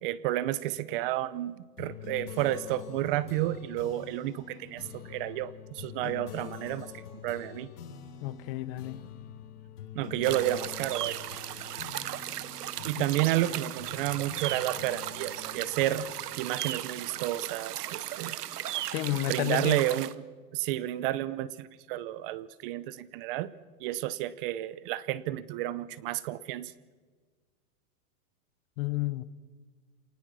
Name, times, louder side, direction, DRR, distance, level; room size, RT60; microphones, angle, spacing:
voice 1, 0.0-7.7 9.9-11.2 12.8-16.1 16.4-18.4 19.1-20.1 20.5-23.5 23.8-26.7, right 14 dB, 35° right, 19 dB, 0.7 m, -31 dB
sound 1, 1.8-17.6, left 8 dB, 80° left, 3.1 m, -46 dB
voice 2, 6.0-6.5 8.2-9.0 13.0-13.1 18.9-20.0 28.8-29.2, left 17 dB, 40° left, 17 dB, 0.9 m, -32 dB
sound 2, 10.2-20.1, right 13 dB, 85° right, 1.1 m, -36 dB
27.5 x 19.5 x 6.3 m, 1.4 s
supercardioid pair, 150°, 46 cm